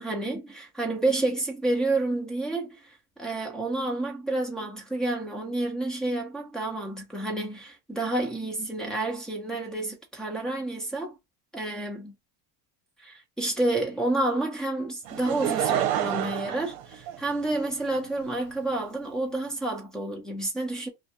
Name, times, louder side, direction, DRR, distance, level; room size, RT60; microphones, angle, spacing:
voice 1, 0.0-11.1 11.5-12.2 13.0-20.9, right 2 dB, ahead, 0.4 m, -29 dB
Laughter / Crowd, 15.1-17.7 18.4-18.5, right 10 dB, 50° right, 0.9 m, -28 dB
2.5 x 2.2 x 2.7 m
cardioid pair, 155°, 45 cm